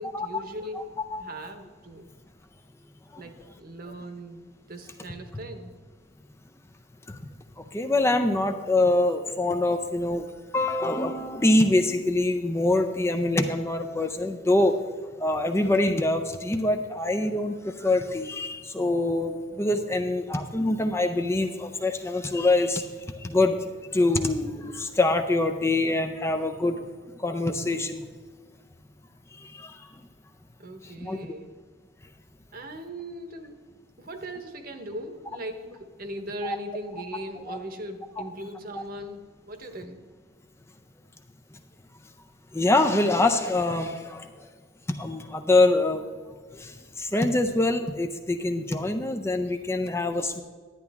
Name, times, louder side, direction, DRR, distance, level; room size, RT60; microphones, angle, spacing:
voice 1, 0.0-2.1 3.2-5.7 30.6-31.5 32.5-33.6 34.0-40.0, right 1 dB, 50° right, 7 dB, 1.0 m, -39 dB
voice 2, 7.7-10.3 10.5-14.7 15.2-22.9 23.2-23.6 23.9-26.8 27.2-28.1 29.3-29.9 30.8-31.2 36.4-36.6 37.1-37.6 42.5-44.3 44.9-46.0 46.5-50.4, left 2 dB, 15° left, 6 dB, 0.5 m, -25 dB
11.0 x 9.7 x 3.5 m, 1.5 s
head